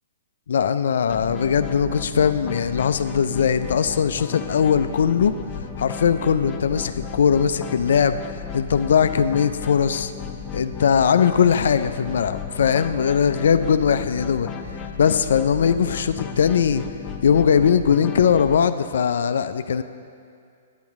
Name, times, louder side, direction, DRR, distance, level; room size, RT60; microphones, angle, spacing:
voice 1, 0.5-5.3 5.8-10.1 10.5-14.5 15.0-16.8 17.2-19.8, left 7 dB, 70° left, 11 dB, 0.3 m, -20 dB
sound 1, 1.1-18.6, left 6 dB, 25° left, 0.6 m, -34 dB
8.8 x 8.5 x 3.5 m, 2.3 s
hypercardioid pair, 125°, 0 cm